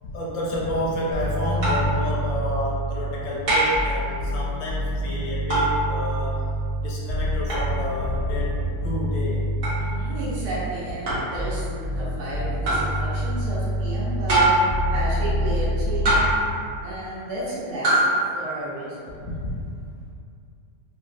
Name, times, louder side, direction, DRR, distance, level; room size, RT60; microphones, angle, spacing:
voice 1, 0.0-6.4 6.8-9.4 11.1-11.2 19.2-19.6, left 1 dB, 70° left, -5 dB, 0.8 m, -30 dB
sound 1, 1.1-3.3 3.7-10.8 11.3-16.3, equal, ahead, 0.6 m, -27 dB
sound 2, 1.6-1.9 3.5-3.9 5.5-5.8 7.5-7.7 9.6-9.8 11.1-11.3 12.6-12.9 14.3-14.7 16.0-16.5 17.8-18.1, right 1 dB, 60° right, 1.2 m, -21 dB
voice 2, 9.8-19.2, right 1 dB, 80° right, -8 dB, 1.4 m, -33 dB
3.3 x 2.3 x 2.3 m, 2.4 s
omnidirectional pair, 1.6 m